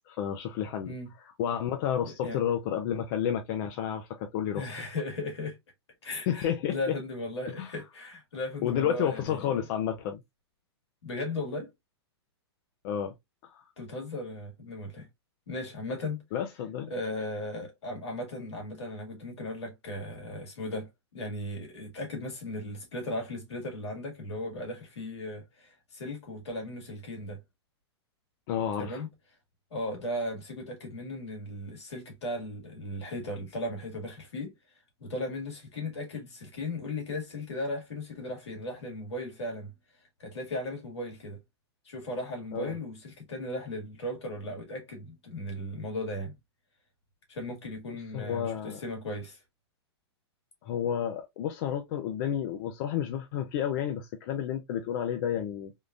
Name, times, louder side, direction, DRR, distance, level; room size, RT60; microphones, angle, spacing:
voice 1, 0.1-4.6 6.3-6.8 7.6-7.7 8.6-10.2 12.8-13.1 13.5-13.6 16.3-16.9 28.5-29.0 42.5-42.8 48.1-48.8 50.6-55.7, left 9 dB, 50° left, 0.6 m, -31 dB
voice 2, 2.0-2.4 4.5-5.6 6.0-9.4 11.0-11.7 13.8-15.1 15.5-16.2 16.9-20.9 21.1-27.4 28.8-29.1 29.7-39.7 40.2-41.4 41.8-46.3 47.3-49.4, left 1 dB, 80° left, 2.0 m, -37 dB
3.7 x 2.4 x 2.5 m
hypercardioid pair, 120°, 14 cm